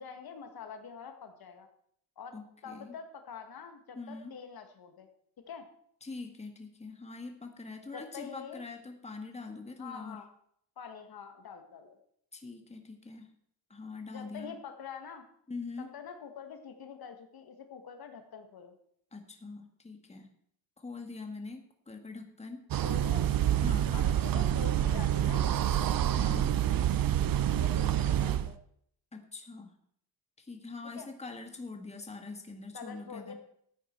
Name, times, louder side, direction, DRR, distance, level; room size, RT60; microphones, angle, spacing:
voice 1, 0.0-1.7 2.2-2.3 2.6-5.1 5.5-5.7 7.9-8.6 9.8-10.3 10.8-12.0 14.1-15.2 15.9-18.7 22.8-23.3 23.9-25.7 27.5-28.6 31.0-31.1 32.7-33.3, left 6 dB, 65° left, 7 dB, 1.7 m, -45 dB
voice 2, 2.3-2.9 3.9-4.3 6.0-10.2 12.3-13.3 13.7-14.5 15.5-15.9 19.1-20.3 20.8-22.7 23.6-23.9 26.1-26.5 29.1-29.7 30.4-33.3, left 3 dB, 15° left, 5 dB, 1.6 m, -43 dB
sound 1, 22.7-28.5, right 11 dB, 60° right, 0.7 m, -27 dB
14.0 x 9.0 x 4.5 m, 0.67 s
cardioid pair, 115°, 40 cm